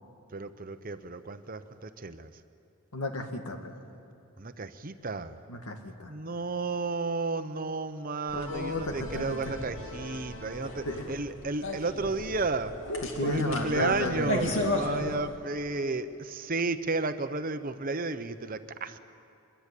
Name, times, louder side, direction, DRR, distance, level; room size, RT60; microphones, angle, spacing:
voice 1, 0.3-2.3 4.4-5.4 6.1-12.7 13.2-19.0, right 3 dB, 40° right, 10 dB, 0.9 m, -33 dB
voice 2, 2.9-3.7 5.5-6.1 8.3-9.4 10.9-11.0 13.2-14.3, left 2 dB, 80° left, 5 dB, 2.2 m, -32 dB
sound 1, 8.3-15.4, left 1 dB, 60° left, 2.8 m, -35 dB
24.5 x 21.5 x 8.4 m, 2.6 s
head